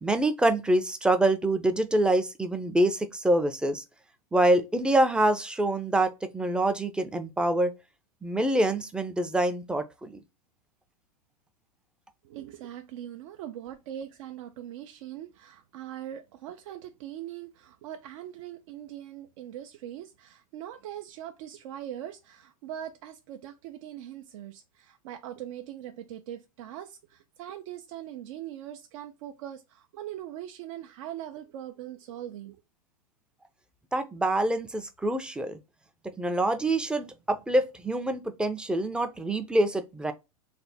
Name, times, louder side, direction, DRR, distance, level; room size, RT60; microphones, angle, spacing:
voice 1, 0.0-3.8 4.3-7.7 8.2-10.1 33.9-35.6 36.2-40.1, right 1 dB, 5° right, 0.4 m, -25 dB
voice 2, 12.2-32.6, right 11 dB, 60° right, 0.5 m, -41 dB
3.3 x 2.1 x 4.1 m
hypercardioid pair, 115°, 18 cm